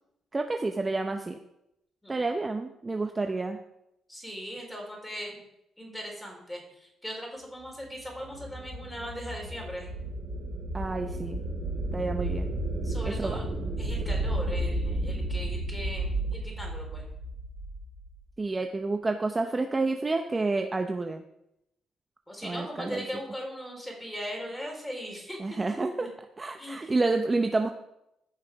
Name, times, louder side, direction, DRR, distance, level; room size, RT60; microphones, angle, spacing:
voice 1, 0.3-1.4 2.1-3.6 10.7-11.4 11.9-12.5 13.0-13.5 18.4-21.2 22.4-23.0 25.4-26.1 26.4-27.7, right 3 dB, 25° right, 5 dB, 0.7 m, -29 dB
voice 2, 4.1-5.4 5.8-9.9 12.8-13.4 13.8-17.0 22.3-25.4 25.9-26.1 26.6-26.9, equal, 5° left, 0 dB, 4.0 m, -39 dB
sound 1, 8.0-18.1, right 1 dB, 75° right, 3.8 m, -32 dB
15.0 x 5.7 x 4.7 m, 0.83 s
cardioid pair, 90°, 0 cm